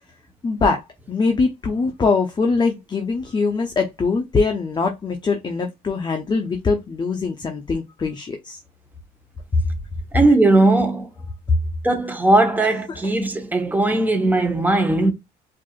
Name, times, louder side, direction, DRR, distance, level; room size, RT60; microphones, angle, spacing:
voice 1, 0.4-8.6, left 4 dB, 25° left, 0.7 m, -22 dB
voice 2, 10.1-11.1 11.8-15.1, right 2 dB, 10° right, 1.0 m, -18 dB
4.6 x 2.7 x 2.4 m
cardioid pair, 110°, 17 cm